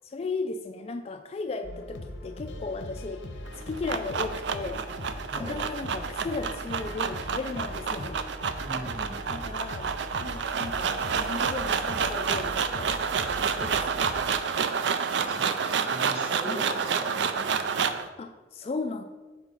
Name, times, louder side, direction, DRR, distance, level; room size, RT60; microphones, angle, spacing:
voice 1, 0.0-8.2 9.3-9.9 10.2-13.0 13.6-14.1 16.5-16.6 18.2-19.0, left 3 dB, 35° left, 6 dB, 0.3 m, -36 dB
sound 1, 1.6-14.2, left 1 dB, 80° left, 0.8 m, -40 dB
sound 2, 3.5-18.1, right 6 dB, 70° right, 0.4 m, -29 dB
voice 2, 5.3-5.6 8.6-9.3 15.1-17.9, right 1 dB, 35° right, -3 dB, 2.3 m, -40 dB
7.3 x 4.1 x 5.2 m, 1.3 s
head